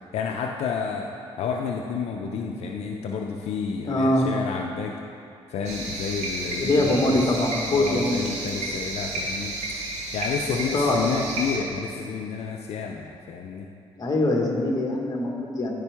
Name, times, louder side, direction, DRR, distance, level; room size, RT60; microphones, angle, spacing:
voice 1, 0.1-1.1 1.4-5.0 5.5-7.2 7.7-9.6 10.1-13.7, left 6 dB, 75° left, 1 dB, 0.5 m, -30 dB
voice 2, 3.8-4.3 6.6-8.3 10.7-11.1 14.0-15.7, left 1 dB, 35° left, 0 dB, 1.3 m, -23 dB
sound 1, 5.6-11.6, right 2 dB, 90° right, 1.3 m, -32 dB
12.5 x 5.4 x 3.5 m, 2.5 s
cardioid pair, 100°, 11 cm